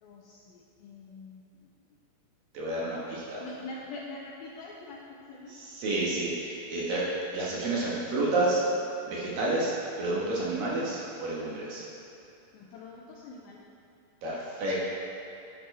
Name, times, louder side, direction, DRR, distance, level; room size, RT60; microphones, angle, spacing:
voice 1, 0.0-1.7 3.4-5.7 6.0-6.1 12.5-13.7, left 3 dB, 80° left, -2 dB, 2.2 m, -44 dB
voice 2, 2.5-3.4 5.5-7.0 7.3-8.6 9.0-11.8 14.2-14.8, right 2 dB, 65° right, -6 dB, 2.8 m, -30 dB
11.0 x 9.5 x 3.4 m, 2.8 s
omnidirectional pair, 4.9 m